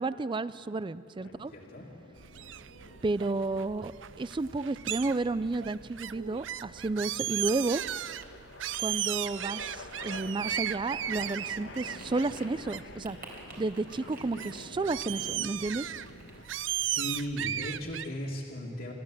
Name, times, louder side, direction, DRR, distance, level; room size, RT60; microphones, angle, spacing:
voice 1, 0.0-1.5 3.0-7.8 8.8-13.2 13.6-15.9, right 3 dB, 25° right, 16 dB, 0.4 m, -32 dB
sound 1, 1.2-16.4, left 2 dB, 85° left, 1.4 m, -49 dB
voice 2, 1.4-1.9 16.8-18.9, equal, 60° left, -5 dB, 2.2 m, -37 dB
sound 2, 2.2-18.1, right 11 dB, 90° right, 0.5 m, -37 dB
sound 3, 7.4-17.2, right 3 dB, 55° right, 3.9 m, -55 dB
27.5 x 13.0 x 7.6 m, 2.5 s
head